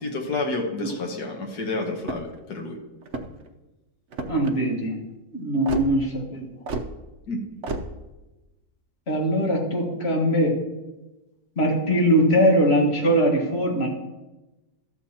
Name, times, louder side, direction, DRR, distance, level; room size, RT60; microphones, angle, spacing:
voice 1, 0.0-2.8 7.3-7.4, left 3 dB, 70° left, 2 dB, 1.9 m, -29 dB
sound 1, 2.0-2.4 3.0-3.5 4.1-4.5 5.7-5.9 6.7-6.9 7.6-7.9, right 3 dB, 55° right, 1.0 m, -31 dB
voice 2, 4.3-5.0 5.3-6.5 9.1-10.6 11.6-13.9, equal, 40° left, 0 dB, 2.0 m, -21 dB
13.0 x 7.7 x 4.3 m, 1.1 s
omnidirectional pair, 1.8 m